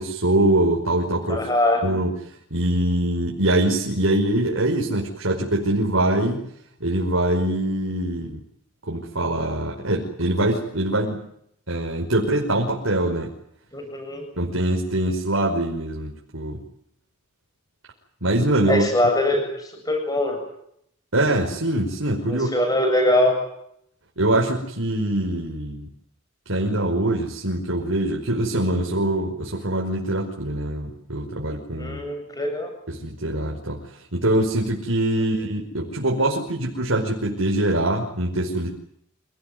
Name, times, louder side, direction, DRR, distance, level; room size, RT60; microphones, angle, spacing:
voice 1, 0.0-1.5 1.8-2.1 2.5-6.5 6.8-8.4 8.9-11.3 11.7-13.3 14.4-16.6 18.2-18.9 21.1-22.5 24.2-25.9 26.5-32.0 32.9-33.8 34.1-38.8, right 1 dB, 75° right, 0 dB, 5.4 m, -23 dB
voice 2, 1.3-1.8 13.7-14.3 18.7-20.4 22.3-23.4 31.8-32.7, left 1 dB, 20° left, 5 dB, 7.6 m, -22 dB
28.0 x 19.5 x 9.5 m, 0.71 s
head